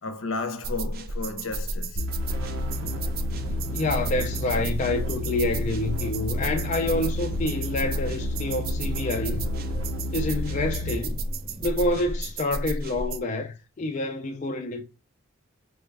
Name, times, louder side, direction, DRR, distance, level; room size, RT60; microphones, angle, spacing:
voice 1, 0.0-2.0, left 3 dB, 80° left, 0.7 m, -33 dB
sound 1, 0.6-13.2, right 1 dB, 45° right, 0.4 m, -32 dB
sound 2, 2.0-11.1, left 1 dB, 85° right, 0.7 m, -32 dB
sound 3, 2.3-12.3, equal, 15° right, 0.7 m, -44 dB
voice 2, 3.7-9.5 10.1-11.2 11.6-14.8, left 2 dB, 35° left, 0.4 m, -28 dB
4.1 x 2.4 x 3.3 m
head